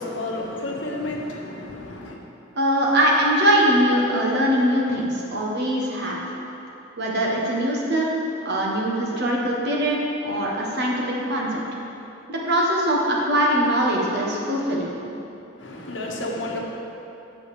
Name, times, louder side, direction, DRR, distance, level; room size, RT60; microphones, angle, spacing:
voice 1, 0.0-2.2 15.6-16.6, left 2 dB, 70° left, -1 dB, 1.1 m, -31 dB
voice 2, 2.5-6.2 7.0-8.1 8.4-11.6 12.3-14.9, equal, 60° right, -3 dB, 1.4 m, -22 dB
8.2 x 6.4 x 5.0 m, 2.8 s
head